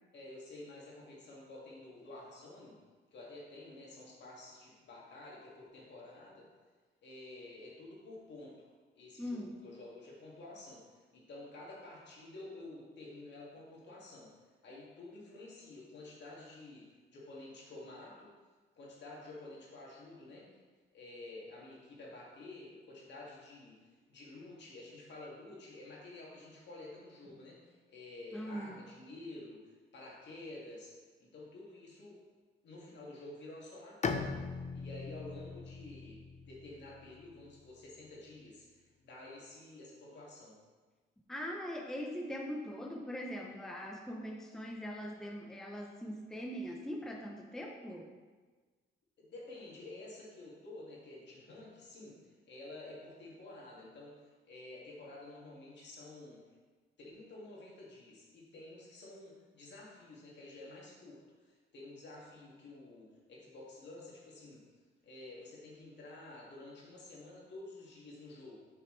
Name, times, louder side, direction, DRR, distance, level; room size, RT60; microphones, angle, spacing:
voice 1, 0.1-2.8 3.1-6.5 7.0-8.7 8.9-14.3 14.6-18.3 18.8-20.5 20.9-32.2 32.6-34.4 34.7-40.6 49.2-56.5 57.0-64.6 65.0-68.7, left 2 dB, 60° left, -4 dB, 2.2 m, -50 dB
voice 2, 9.2-9.5 28.3-28.8 41.3-48.1, equal, ahead, 0 dB, 0.8 m, -41 dB
Bowed string instrument, 34.0-37.6, left 4 dB, 35° left, 0.6 m, -40 dB
7.7 x 5.7 x 3.3 m, 1.4 s
cardioid pair, 90°, 20 cm